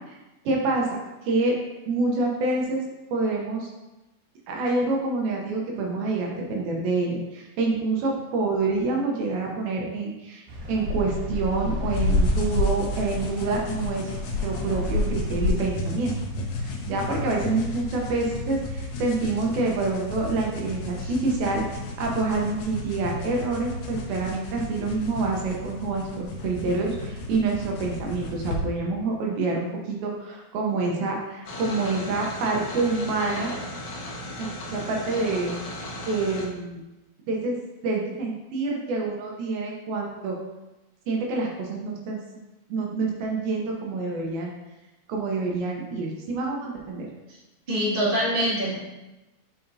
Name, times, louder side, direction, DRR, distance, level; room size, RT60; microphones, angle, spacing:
voice 1, 0.5-0.9 1.2-1.6 1.9-2.8 3.1-3.7 4.5-10.4 10.7-14.1 14.4-16.2 16.6-21.6 22.0-33.5 34.4-35.6 36.1-36.8 37.3-37.6 37.8-40.4 41.1-42.2 42.7-44.5 45.1-47.1, right 3 dB, 80° right, -1 dB, 2.6 m, -27 dB
sound 1, 10.5-15.5, left 2 dB, 55° right, 2.2 m, -27 dB
sound 2, 11.9-28.6, left 2 dB, 70° left, 1.9 m, -34 dB
sound 3, 31.4-36.5, left 1 dB, 90° left, 1.3 m, -36 dB
voice 2, 47.7-48.7, equal, 20° right, -9 dB, 1.7 m, -24 dB
7.8 x 5.7 x 2.7 m, 1.0 s
omnidirectional pair, 4.4 m